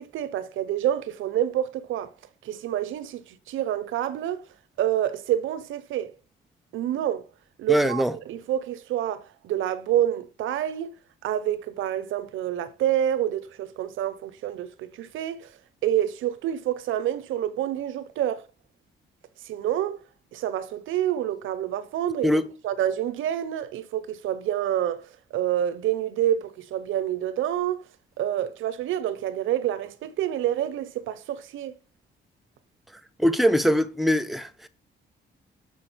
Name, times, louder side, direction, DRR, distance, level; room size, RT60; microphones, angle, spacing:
voice 1, 0.0-2.1 2.4-4.4 4.8-6.1 6.7-7.2 7.6-11.0 11.2-15.5 15.8-18.4 19.4-20.0 20.3-22.3 22.6-25.0 25.3-27.8 28.2-31.7, right 11 dB, 80° right, 0.8 m, -27 dB
voice 2, 7.7-8.1 22.2-22.4 33.2-34.7, equal, ahead, 0.9 m, -22 dB
6.4 x 4.7 x 6.1 m
cardioid pair, 90°, 20 cm